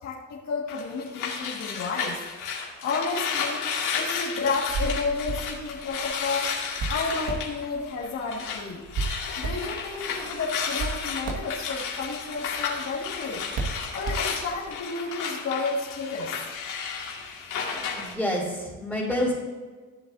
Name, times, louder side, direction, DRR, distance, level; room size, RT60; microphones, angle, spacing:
voice 1, 0.0-2.2 2.8-3.6 3.9-6.5 6.9-8.8 9.4-13.4 13.9-16.4, left 4 dB, 60° left, -5 dB, 1.9 m, -31 dB
sound 1, 0.7-8.6 8.9-18.1, left 6 dB, 80° left, 2.2 m, -33 dB
Hands, 4.5-14.7, right 3 dB, 75° right, 1.8 m, -36 dB
voice 2, 17.9-19.3, left 1 dB, ahead, -7 dB, 3.1 m, -28 dB
15.0 x 7.8 x 2.7 m, 1.4 s
cardioid pair, 90°, 30 cm